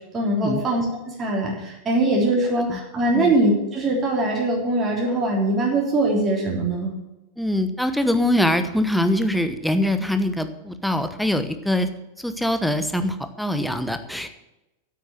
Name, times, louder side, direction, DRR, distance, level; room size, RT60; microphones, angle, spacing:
voice 1, 0.1-6.9, right 2 dB, 25° right, -3 dB, 3.5 m, -22 dB
voice 2, 7.4-11.9 12.2-14.3, left 1 dB, ahead, 9 dB, 1.0 m, -23 dB
10.0 x 8.4 x 7.8 m, 0.97 s
figure-of-eight pair, 90°, 0 cm